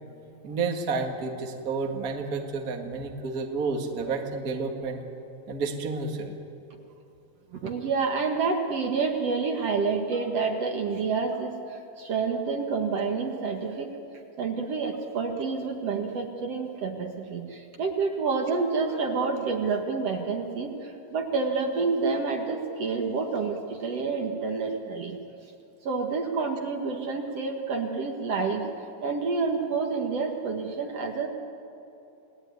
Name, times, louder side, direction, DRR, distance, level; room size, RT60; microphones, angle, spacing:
voice 1, 0.4-5.0 5.5-6.4, right 4 dB, 30° right, 3 dB, 2.0 m, -30 dB
voice 2, 7.5-13.9 14.4-25.2 25.8-28.7 29.0-31.3, right 4 dB, 55° right, 3 dB, 2.4 m, -28 dB
29.0 x 19.0 x 9.6 m, 2.9 s
omnidirectional pair, 3.7 m